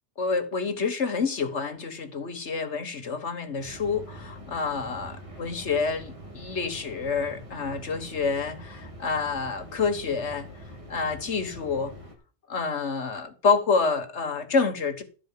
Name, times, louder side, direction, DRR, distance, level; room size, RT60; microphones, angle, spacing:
voice 1, 0.2-10.5 10.9-11.9 12.5-15.0, left 4 dB, 75° left, 1.8 m, -28 dB
sound 1, 3.6-12.1, equal, 30° right, 2.9 m, -44 dB
12.5 x 4.8 x 7.4 m
omnidirectional pair, 1.2 m